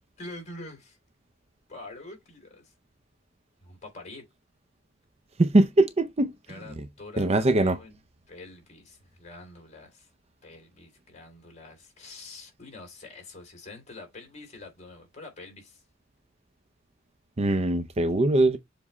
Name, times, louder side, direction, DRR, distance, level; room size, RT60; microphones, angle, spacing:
voice 1, 0.2-1.0 1.7-2.7 3.6-4.2 6.5-7.9 8.3-10.1 10.4-15.8, left 2 dB, 35° left, 3.3 m, -45 dB
voice 2, 5.4-6.3 7.2-7.8 17.4-18.6, right 2 dB, 30° right, 0.6 m, -21 dB
7.2 x 3.4 x 4.1 m
head